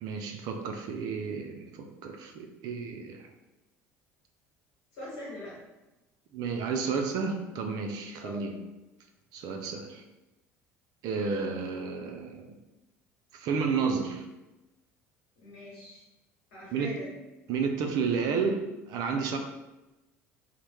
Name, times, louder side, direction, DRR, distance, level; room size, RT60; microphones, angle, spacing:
voice 1, 0.0-3.3 6.3-8.6 9.3-10.0 11.0-12.6 13.3-14.2 16.7-17.0 17.5-19.4, right 5 dB, 60° right, 3 dB, 0.4 m, -31 dB
voice 2, 4.9-5.6 8.2-8.4 15.3-16.0 16.5-17.1, left 1 dB, 75° left, -7 dB, 1.2 m, -42 dB
2.1 x 2.0 x 3.0 m, 1.0 s
hypercardioid pair, 75°, 7 cm